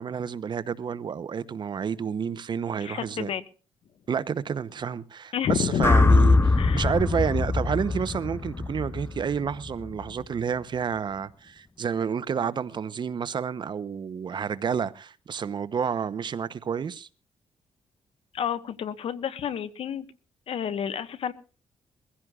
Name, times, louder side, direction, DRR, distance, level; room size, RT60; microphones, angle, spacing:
voice 1, 0.0-3.3 4.1-17.1, right 7 dB, 45° right, 0.8 m, -30 dB
voice 2, 2.8-3.4 5.3-5.9 6.6-6.9 18.3-20.0 20.5-21.3, left 8 dB, 65° left, 1.2 m, -30 dB
sound 1, 5.8-10.0, left 3 dB, 25° left, 0.6 m, -22 dB
22.5 x 16.0 x 2.4 m
cardioid pair, 100°, 10 cm